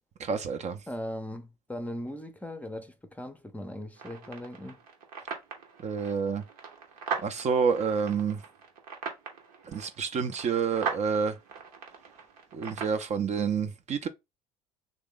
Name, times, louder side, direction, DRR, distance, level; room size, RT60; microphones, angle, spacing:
voice 1, 0.2-0.8 5.8-6.4 7.2-8.4 9.7-11.3 12.5-14.1, right 6 dB, 40° right, 0.5 m, -28 dB
voice 2, 0.9-4.8, left 1 dB, 10° left, 0.6 m, -39 dB
sound 1, 4.0-13.0, right 5 dB, 80° right, 1.0 m, -40 dB
3.1 x 2.6 x 3.6 m
hypercardioid pair, 65°, 19 cm